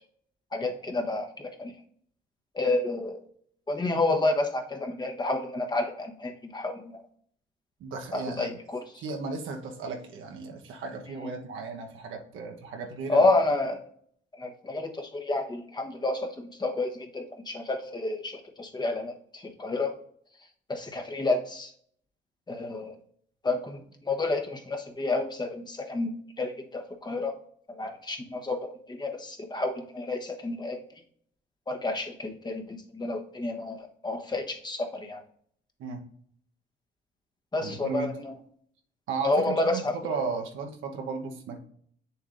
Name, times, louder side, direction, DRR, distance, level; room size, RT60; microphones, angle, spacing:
voice 1, 0.5-1.7 2.5-3.2 3.7-7.0 8.1-8.8 13.1-13.8 14.4-19.9 20.7-21.7 22.5-23.0 23.4-26.1 26.4-27.3 27.7-30.8 31.7-35.2 37.5-38.3 39.2-39.9, left 2 dB, 20° left, 4 dB, 1.1 m, -30 dB
voice 2, 7.8-8.6 9.0-13.2 35.8-36.0 37.6-38.1 39.1-41.6, right 4 dB, 85° right, 3 dB, 1.1 m, -35 dB
7.9 x 7.0 x 2.6 m, 0.63 s
cardioid pair, 90°, 20 cm